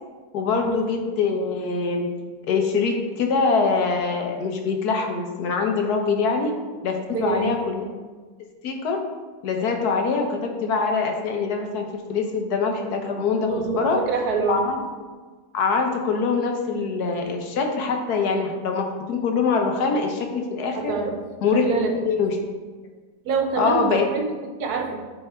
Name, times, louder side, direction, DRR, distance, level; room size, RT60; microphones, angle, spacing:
voice 1, 0.3-2.1 2.5-6.5 6.8-7.8 8.6-9.0 9.4-14.0 14.5-14.8 15.5-20.9 21.4-22.4 23.6-24.1, left 4 dB, 70° left, 3 dB, 1.3 m, -24 dB
voice 2, 7.1-7.5 13.5-14.6 20.7-21.2 21.5-21.9 23.2-25.0, right 5 dB, 70° right, 3 dB, 1.3 m, -26 dB
9.3 x 3.4 x 4.3 m, 1.4 s
omnidirectional pair, 1.8 m